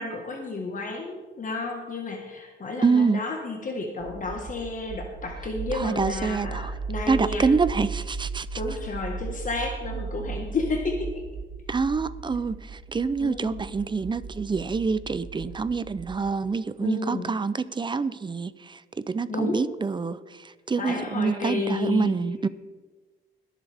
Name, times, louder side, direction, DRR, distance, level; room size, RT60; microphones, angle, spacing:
voice 1, 0.0-7.5 8.5-11.3 13.2-13.6 16.8-17.3 19.3-19.6 20.8-22.2, left 3 dB, 40° left, 2 dB, 1.6 m, -31 dB
voice 2, 2.8-3.2 5.7-6.7 7.1-8.6 11.7-22.5, right 4 dB, 25° right, 16 dB, 0.6 m, -26 dB
sound 1, 4.0-16.2, right 5 dB, 85° right, 1.8 m, -36 dB
22.0 x 7.4 x 3.6 m, 1.3 s
cardioid pair, 90°, 20 cm